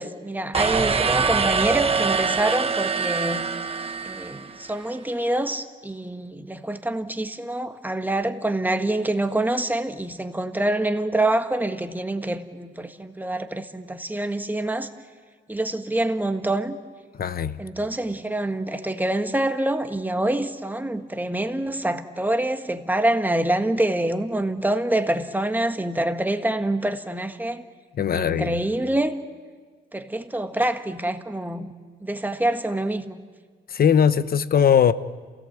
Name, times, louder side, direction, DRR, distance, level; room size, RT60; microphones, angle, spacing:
voice 1, 0.0-3.5 4.0-14.9 15.5-16.8 17.6-27.7 28.1-29.1 29.9-31.7 32.0-33.2, right 1 dB, 10° right, 1.6 m, -26 dB
sound 1, 0.5-4.7, right 5 dB, 30° right, 1.4 m, -24 dB
voice 2, 17.2-17.6 28.0-28.6 33.7-34.9, left 8 dB, 50° left, 0.9 m, -19 dB
28.0 x 17.5 x 8.2 m
cardioid pair, 90°, 20 cm